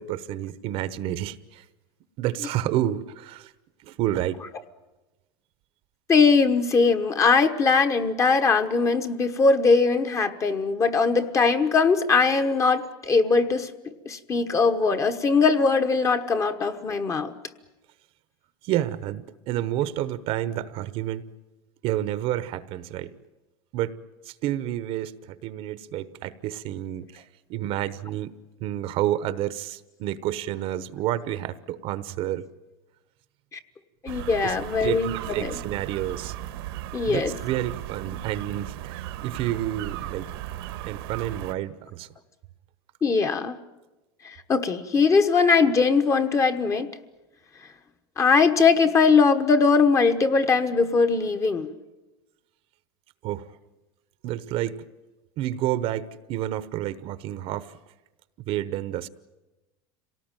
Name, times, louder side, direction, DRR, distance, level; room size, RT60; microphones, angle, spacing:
voice 1, 0.0-1.6 2.2-3.5 3.8-4.4 18.6-21.3 21.8-23.1 23.7-24.0 24.3-27.2 27.5-28.3 28.6-32.4 34.4-34.5 34.8-36.3 37.1-40.3 40.8-42.1 53.2-53.5 54.2-54.8 55.4-57.7 58.5-59.1, right 13 dB, 50° right, 14 dB, 1.0 m, -29 dB
voice 2, 6.1-13.7 14.0-17.3 34.0-35.6 36.9-37.3 43.0-43.6 44.2-46.9 48.2-51.7, left 4 dB, 25° left, 8 dB, 1.3 m, -21 dB
sound 1, 34.1-41.5, right 13 dB, 80° right, 1.5 m, -36 dB
26.5 x 18.0 x 9.1 m, 1.1 s
supercardioid pair, 145°, 13 cm